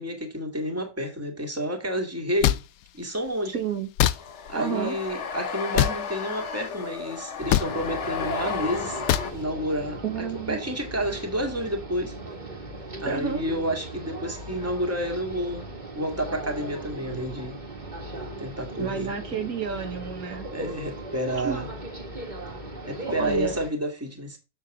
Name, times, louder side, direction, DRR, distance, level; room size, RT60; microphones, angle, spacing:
voice 1, 0.0-2.6 2.9-3.5 4.5-9.0 9.3-10.0 10.5-12.2 13.0-15.7 15.9-17.6 18.4-19.1 20.5-21.7 22.9-24.4, equal, 10° right, 2.0 m, -30 dB
sound 1, 2.4-2.6 4.0-4.2 5.7-6.0 7.5-7.7 9.1-9.3, left 13 dB, 75° left, 1.0 m, -21 dB
voice 2, 3.5-3.9 4.5-5.0 10.0-10.6 13.1-13.5 18.8-20.5 21.4-21.6 23.1-23.6, right 7 dB, 75° right, 1.8 m, -30 dB
sound 2, 4.1-9.3, left 5 dB, 55° left, 1.2 m, -33 dB
sound 3, 7.4-23.7, right 1 dB, 30° right, 2.0 m, -38 dB
7.5 x 6.7 x 3.6 m
omnidirectional pair, 1.6 m